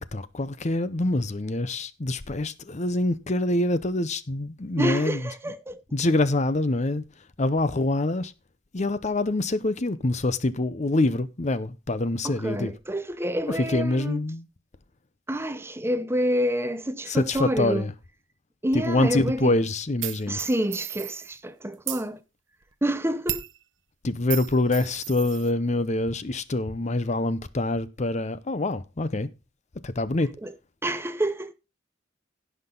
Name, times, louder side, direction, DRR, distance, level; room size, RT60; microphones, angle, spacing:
voice 1, 0.0-5.3 5.9-7.0 7.4-8.3 8.7-12.7 13.7-14.5 17.1-17.9 18.7-20.4 24.0-29.3 29.8-30.3, left 2 dB, 40° left, 0.8 m, -25 dB
voice 2, 4.8-5.8 12.2-14.2 15.3-17.9 18.6-19.5 20.3-22.2 22.8-23.4 30.4-30.5 30.8-31.5, right 1 dB, 15° right, 0.7 m, -28 dB
sound 1, 20.0-21.3 21.7-22.0 23.3-23.6 24.3-25.5, right 13 dB, 80° right, 1.0 m, -34 dB
16.5 x 6.0 x 3.8 m
head